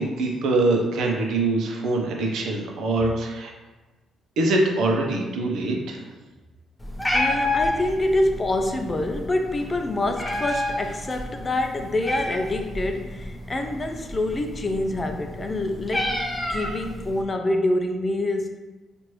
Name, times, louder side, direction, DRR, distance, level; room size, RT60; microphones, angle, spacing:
voice 1, 0.0-3.5 4.4-6.0, right 2 dB, 75° right, 0 dB, 0.7 m, -23 dB
Meow, 6.8-17.2, left 1 dB, 10° left, 0.8 m, -30 dB
voice 2, 7.1-16.2 16.5-18.6, left 1 dB, 30° left, 5 dB, 0.4 m, -26 dB
4.4 x 2.5 x 3.1 m, 1.2 s
cardioid pair, 90°, 0 cm